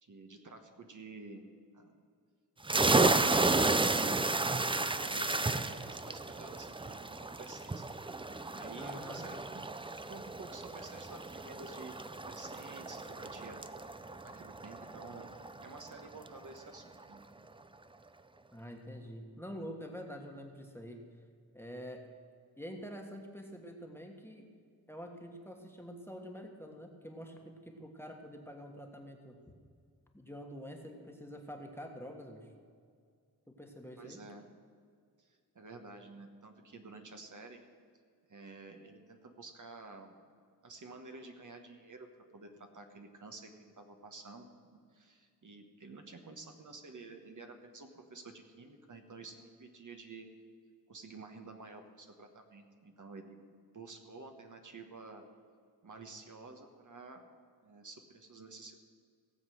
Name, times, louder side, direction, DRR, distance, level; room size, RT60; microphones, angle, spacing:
voice 1, 0.0-1.4 1.7-1.9 4.5-7.9 8.5-9.7 10.1-13.6 14.2-15.3 15.6-17.2 34.0-34.5 35.2-37.6 38.3-40.1 40.6-42.1 42.3-50.3 50.9-53.4 53.7-55.2 55.8-57.2 57.6-58.8, right 3 dB, 50° right, 4 dB, 1.3 m, -51 dB
sound 1, 2.6-16.0, right 3 dB, 15° right, 0.4 m, -32 dB
voice 2, 8.8-9.2 18.5-21.1 21.5-22.1 22.6-24.5 24.9-29.4 30.1-32.5 33.5-34.2, equal, 5° left, 2 dB, 1.4 m, -46 dB
17.5 x 7.5 x 6.3 m, 2.1 s
wide cardioid pair, 105°, 39 cm